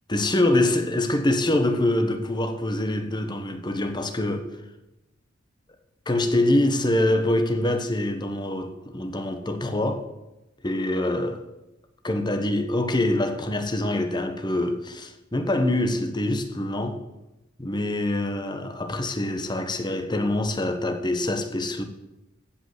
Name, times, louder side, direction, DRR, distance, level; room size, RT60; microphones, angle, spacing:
voice 1, 0.1-4.5 6.1-10.1 10.6-11.4 12.0-17.0 17.6-21.8, left 1 dB, 25° left, 1.2 m, -25 dB
15.0 x 5.5 x 7.9 m
head